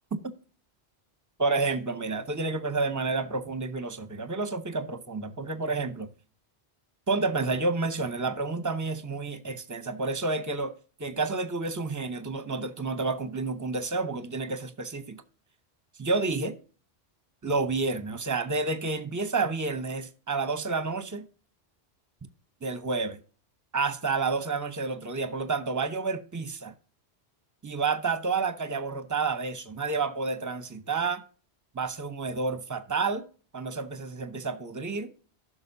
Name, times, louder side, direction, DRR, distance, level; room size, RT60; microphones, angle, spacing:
voice 1, 1.4-6.1 7.1-10.7 11.0-15.2 16.0-16.6 17.4-21.3 22.6-23.2 23.7-26.7 27.6-31.2 31.7-33.3 33.5-35.1, right 3 dB, 20° right, 0.7 m, -30 dB
15.0 x 6.2 x 2.6 m
omnidirectional pair, 1.1 m